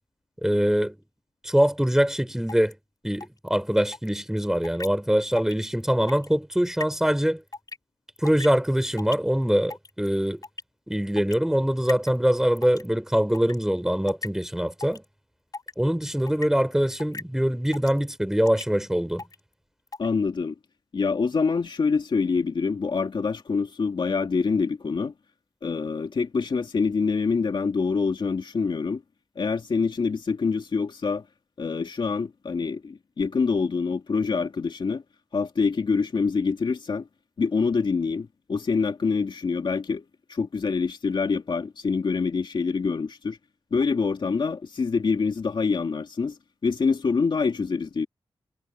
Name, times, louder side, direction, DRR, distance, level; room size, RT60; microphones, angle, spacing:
voice 1, 0.4-0.9 1.4-2.7 3.0-7.4 8.2-10.4 10.9-15.0 15.8-19.2, equal, 5° right, 5.0 m, -23 dB
sound 1, 2.5-2.7 3.2-3.5 3.9-4.1 4.6-4.9 5.3-5.5 5.8-6.3 6.8-6.9 7.5-7.8 8.2-8.6 9.0-9.2 9.7-10.1 10.4-10.6 11.2-11.3 11.9-12.2 12.6-12.9 13.3-13.6 14.1-14.3 14.8-15.1 15.5-15.7 16.2-16.5 17.0-17.2 17.7-18.0 18.5-18.7 19.2-19.4 19.9-20.1, left 3 dB, 45° left, 5.1 m, -37 dB
voice 2, 20.0-20.5 20.9-25.1 25.6-29.0 29.4-31.2 31.6-35.0 35.3-37.1 37.4-43.4 43.7-46.4 46.6-48.1, left 4 dB, 60° left, 2.6 m, -25 dB
wide cardioid pair, 85°, 9 cm